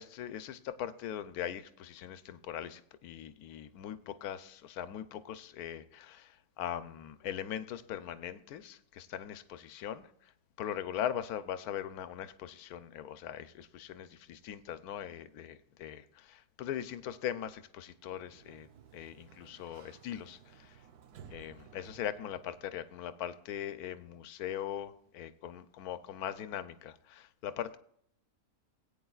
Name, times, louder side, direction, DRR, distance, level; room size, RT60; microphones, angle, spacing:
voice 1, 0.0-10.3 10.6-20.8 21.3-27.8, left 10 dB, 75° left, 1.2 m, -40 dB
Sliding door, 17.9-22.8, right 8 dB, 80° right, 1.3 m, -57 dB
17.5 x 9.1 x 2.4 m
omnidirectional pair, 1.6 m